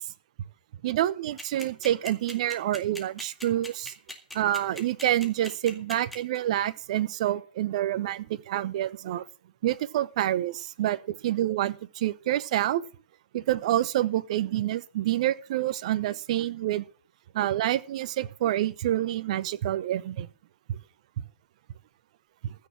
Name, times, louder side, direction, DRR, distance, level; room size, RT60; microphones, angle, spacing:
voice 1, 0.8-3.9 4.3-9.2 9.6-12.8 13.3-16.9 17.3-20.3 20.7-20.8 21.2-21.3 22.4-22.5, right 13 dB, 40° right, 16 dB, 0.9 m, -27 dB
sound 1, 1.4-6.4, left 1 dB, ahead, 2.1 m, -39 dB
15.0 x 6.6 x 7.3 m, 0.40 s
figure-of-eight pair, 130°, 5 cm